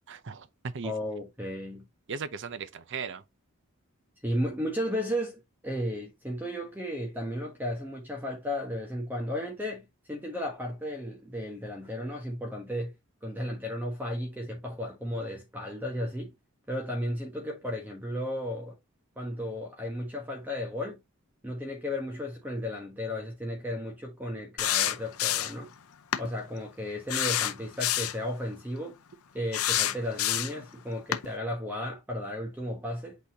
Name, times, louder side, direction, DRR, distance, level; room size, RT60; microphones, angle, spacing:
voice 1, 0.0-0.9 2.1-3.2, right 5 dB, 55° right, 0.7 m, -37 dB
voice 2, 0.8-1.9 4.2-12.9 13.2-16.3 16.7-18.8 19.2-21.0 21.4-25.7 26.2-29.0 29.3-33.2, left 1 dB, 10° right, 1.3 m, -34 dB
sound 1, 24.6-25.6 26.1-26.3 27.1-28.2 29.5-30.6 31.1-31.3, left 12 dB, 75° left, 0.7 m, -27 dB
8.3 x 4.1 x 2.9 m
head